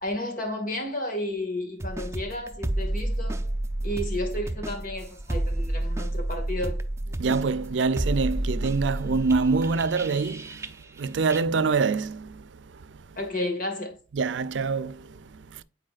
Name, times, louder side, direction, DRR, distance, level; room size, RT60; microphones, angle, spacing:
voice 1, 0.0-3.5 3.8-6.8 13.2-14.0, left 1 dB, 50° left, 1.9 m, -32 dB
sound 1, 1.8-11.0 11.3-11.4, right 1 dB, 15° right, 0.6 m, -30 dB
voice 2, 7.2-13.2 14.1-15.6, right 4 dB, 90° right, 0.5 m, -26 dB
8.8 x 4.5 x 2.4 m
head